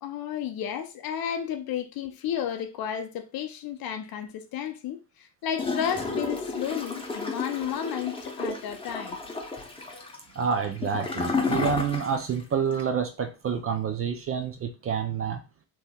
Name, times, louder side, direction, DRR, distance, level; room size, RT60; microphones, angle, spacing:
voice 1, 0.0-9.2, left 9 dB, 45° left, 0.6 m, -32 dB
Gurgling / Toilet flush, 5.6-12.4 12.7-12.8, left 3 dB, 10° left, 0.8 m, -32 dB
voice 2, 10.4-15.4, right 6 dB, 30° right, 0.4 m, -28 dB
3.3 x 2.9 x 2.2 m
hypercardioid pair, 65°, 49 cm